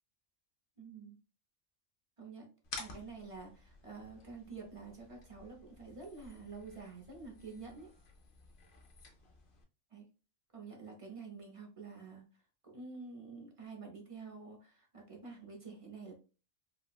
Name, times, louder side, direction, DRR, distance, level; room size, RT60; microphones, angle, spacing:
voice 1, 0.8-1.2 2.2-2.5 2.8-7.9 9.9-10.0 10.5-12.2 12.6-16.1, right 4 dB, 45° right, 0 dB, 0.4 m, -48 dB
sound 1, 2.6-9.6, left 3 dB, 50° left, 0.6 m, -52 dB
4.1 x 2.1 x 2.3 m, 0.34 s
omnidirectional pair, 1.5 m